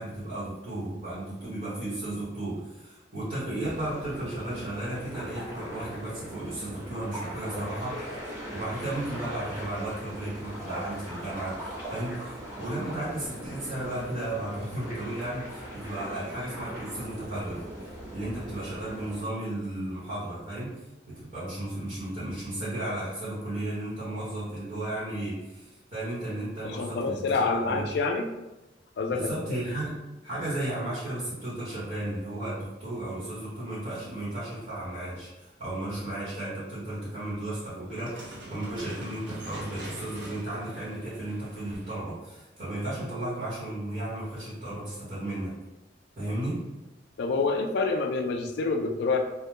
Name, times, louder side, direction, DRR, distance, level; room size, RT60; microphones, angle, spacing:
voice 1, 0.0-17.7 18.1-27.8 29.1-30.0 30.2-45.6 46.2-46.6, right 1 dB, 40° right, -11 dB, 1.0 m, -34 dB
sound 1, 3.6-19.2, right 1 dB, 20° right, 1.0 m, -40 dB
voice 2, 26.6-28.3 29.0-29.2 47.2-49.2, left 4 dB, 65° left, 5 dB, 0.3 m, -27 dB
sound 2, 37.9-42.1, right 1 dB, 70° right, 0.6 m, -43 dB
2.4 x 2.1 x 3.0 m, 0.99 s
head